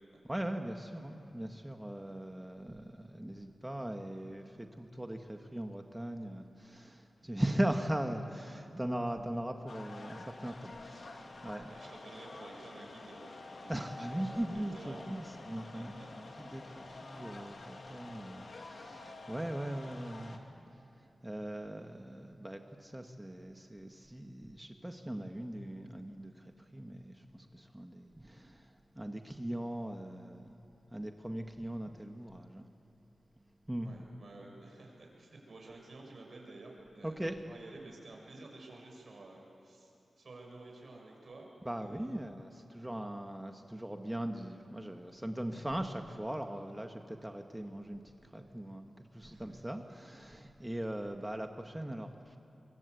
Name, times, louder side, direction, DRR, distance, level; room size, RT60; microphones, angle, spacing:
voice 1, 0.2-11.7 13.7-30.6 30.9-32.7 33.7-34.0 37.0-37.4 41.6-52.4, right 1 dB, 15° right, 5 dB, 1.7 m, -40 dB
sound 1, 9.7-20.4, left 3 dB, 60° left, 2.7 m, -49 dB
voice 2, 11.5-15.0 15.5-16.1 16.5-17.3 17.6-18.1 33.8-39.9 40.2-42.3 49.3-49.6, right 2 dB, 60° right, -1 dB, 7.8 m, -52 dB
23.5 x 23.0 x 8.5 m, 2.7 s
cardioid pair, 40°, 0 cm